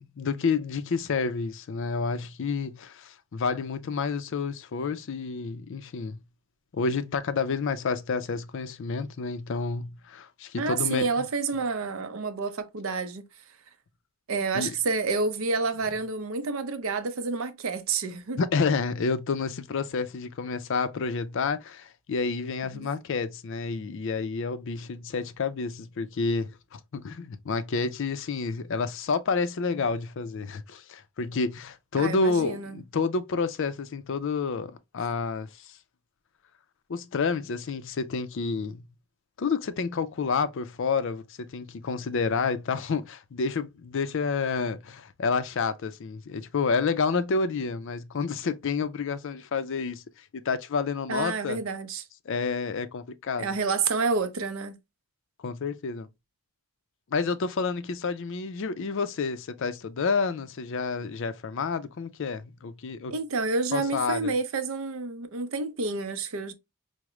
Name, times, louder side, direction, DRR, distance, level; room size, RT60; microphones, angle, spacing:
voice 1, 0.2-6.2 6.7-11.1 14.5-14.7 18.4-35.8 36.9-38.8 39.4-51.6 52.3-53.5 55.4-56.1 57.1-63.1 63.7-64.3, left 4 dB, 55° left, 0.4 m, -29 dB
voice 2, 10.6-13.2 14.3-18.4 22.7-22.9 32.0-32.8 51.1-52.1 53.4-54.8 63.1-66.5, right 4 dB, 65° right, 0.5 m, -29 dB
4.8 x 2.1 x 3.0 m
head